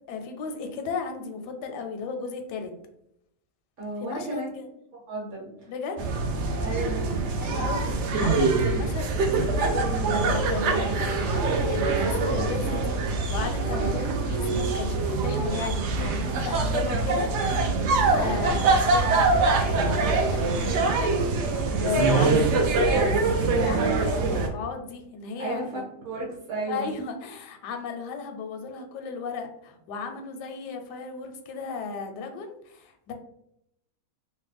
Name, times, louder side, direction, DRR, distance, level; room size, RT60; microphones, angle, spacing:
voice 1, 0.1-2.7 4.0-4.7 5.7-6.0 7.4-25.8 26.7-33.1, left 4 dB, 85° left, 5 dB, 1.2 m, -35 dB
voice 2, 3.8-4.5 5.1-5.7 6.6-7.0 25.4-25.7 26.0-26.9, right 2 dB, 50° right, -3 dB, 1.2 m, -33 dB
sound 1, 6.0-24.5, right 3 dB, 85° right, 0.6 m, -24 dB
3.1 x 2.1 x 3.2 m, 0.77 s
omnidirectional pair, 1.8 m